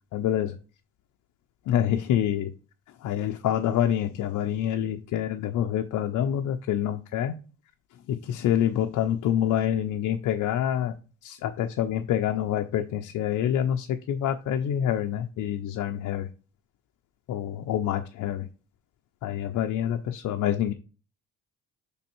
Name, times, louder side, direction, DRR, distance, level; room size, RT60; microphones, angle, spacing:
voice 1, 0.1-0.5 1.7-2.5 3.0-7.3 8.1-10.9 11.2-16.3 17.3-18.5 19.2-20.7, left 10 dB, 75° left, 5 dB, 0.5 m, -26 dB
6.2 x 3.4 x 4.4 m, 0.36 s
cardioid pair, 90°, 30 cm